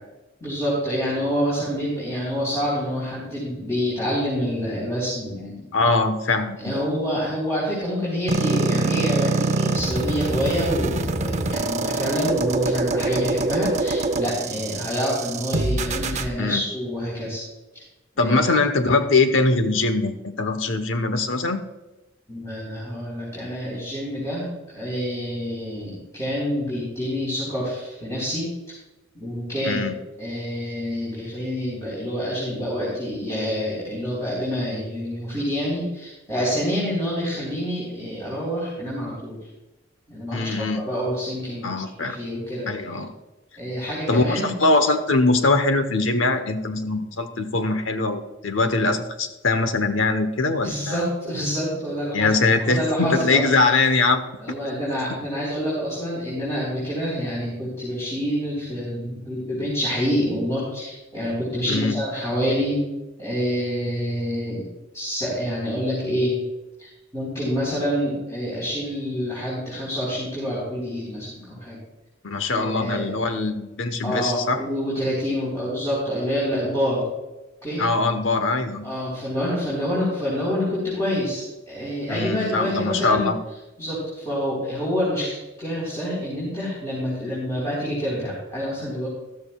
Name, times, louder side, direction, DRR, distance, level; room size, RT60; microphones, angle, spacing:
voice 1, 0.4-5.7 6.6-17.4 17.7-17.8 18.2-18.3 22.3-28.5 29.1-29.8 30.2-39.4 40.1-42.7 43.6-44.6 50.6-52.3 52.7-53.5 54.4-62.8 63.2-64.7 64.9-66.4 66.8-71.8 72.5-73.1 74.0-77.0 77.6-77.8 78.8-83.3 83.8-89.1, equal, 15° left, -8 dB, 3.9 m, -27 dB
voice 2, 5.7-6.8 16.4-16.6 18.2-21.6 29.6-29.9 40.3-40.8 41.6-42.2 42.7-43.1 44.1-51.0 52.1-54.2 61.7-62.0 72.2-74.6 77.8-78.9 82.1-83.4, left 3 dB, 80° left, 9 dB, 1.0 m, -22 dB
sound 1, 8.3-16.3, right 2 dB, 35° right, 0.6 m, -24 dB
13.5 x 13.0 x 2.3 m, 1.1 s
head